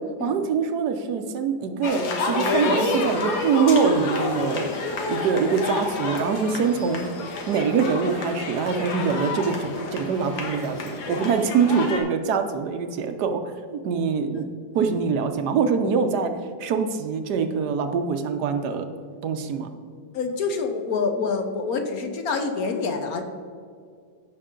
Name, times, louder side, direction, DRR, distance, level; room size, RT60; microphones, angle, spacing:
voice 1, 0.2-4.7 5.1-7.1 7.5-13.4 13.7-14.4 14.7-16.3 16.6-18.8 19.2-19.7, right 5 dB, 65° right, 7 dB, 1.2 m, -24 dB
sound 1, 1.8-12.0, left 3 dB, 85° left, 2.0 m, -29 dB
voice 2, 20.1-23.2, left 4 dB, 55° left, 5 dB, 1.3 m, -26 dB
14.5 x 5.8 x 3.8 m, 2.2 s
omnidirectional pair, 2.0 m